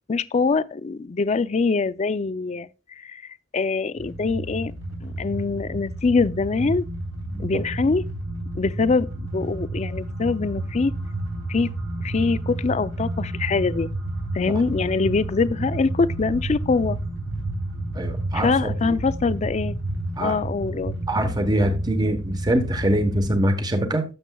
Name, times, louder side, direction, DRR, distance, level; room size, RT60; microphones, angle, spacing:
voice 1, 0.1-2.7 3.0-4.7 5.0-6.8 7.4-8.0 8.6-10.9 11.5-11.7 12.0-13.9 14.3-17.0 18.3-19.8 20.2-21.0, left 4 dB, 35° left, 0.4 m, -24 dB
sound 1, 4.0-23.4, right 1 dB, 85° right, 3.4 m, -31 dB
voice 2, 7.3-7.6 17.9-19.0 20.2-20.4 21.1-24.0, right 1 dB, 20° right, 1.1 m, -23 dB
12.5 x 7.0 x 2.3 m
head